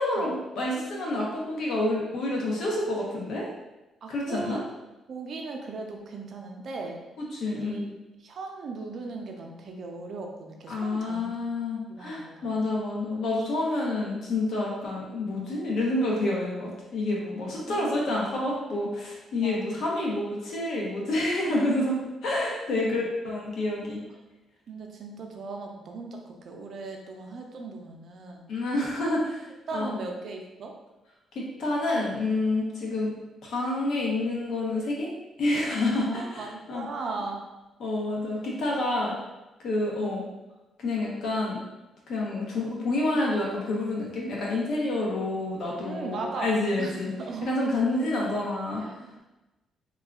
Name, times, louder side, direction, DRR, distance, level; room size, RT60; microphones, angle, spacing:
voice 1, 0.0-3.5 4.1-4.6 7.2-7.8 10.7-24.0 28.5-29.4 29.7-30.0 31.3-33.2 33.4-35.1 35.4-36.8 37.8-39.2 39.6-40.2 40.8-41.6 42.1-47.1 47.4-48.8, left 2 dB, 70° left, -3 dB, 0.8 m, -28 dB
voice 2, 4.0-4.6 5.1-7.0 7.5-7.9 8.2-11.4 11.9-12.7 17.4-17.9 19.4-19.8 22.7-23.1 24.7-28.4 29.7-30.7 36.0-37.4 39.0-39.1 45.8-47.5 48.7-49.2, right 3 dB, 60° right, 2 dB, 0.5 m, -38 dB
3.5 x 2.3 x 2.3 m, 1.0 s
cardioid pair, 90°, 0 cm